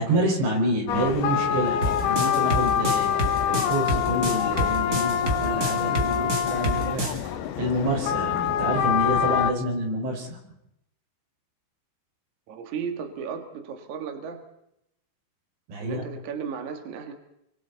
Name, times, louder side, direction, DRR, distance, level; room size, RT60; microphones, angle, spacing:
voice 1, 0.0-7.1 7.6-10.4 15.7-16.0, right 1 dB, 75° right, 0 dB, 7.2 m, -28 dB
sound 1, 0.9-9.5, left 9 dB, 75° left, 2.7 m, -25 dB
sound 2, 1.8-7.2, right 1 dB, 30° right, 1.9 m, -28 dB
voice 2, 12.5-14.4 15.8-17.1, right 6 dB, 55° right, 5 dB, 2.6 m, -35 dB
28.0 x 25.0 x 4.1 m, 0.80 s
omnidirectional pair, 5.2 m